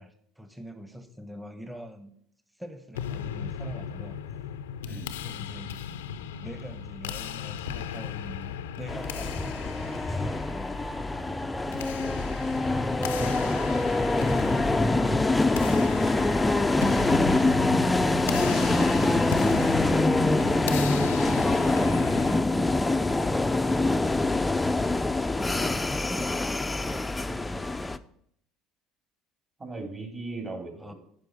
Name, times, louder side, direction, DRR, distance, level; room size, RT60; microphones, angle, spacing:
voice 1, 0.0-2.1 2.6-4.2 5.2-5.7 6.4-10.8 12.7-16.3 21.4-24.0 25.4-28.0 30.8-30.9, equal, 5° right, 8 dB, 1.1 m, -43 dB
sound 1, 2.9-22.4, left 8 dB, 80° left, 0.5 m, -37 dB
voice 2, 4.9-5.2 13.1-13.3 25.6-25.7 29.6-30.9, right 3 dB, 30° right, 2 dB, 3.0 m, -39 dB
sound 2, 8.9-28.0, left 2 dB, 15° left, 0.4 m, -25 dB
10.5 x 5.2 x 5.2 m, 0.70 s
hypercardioid pair, 70°, 0 cm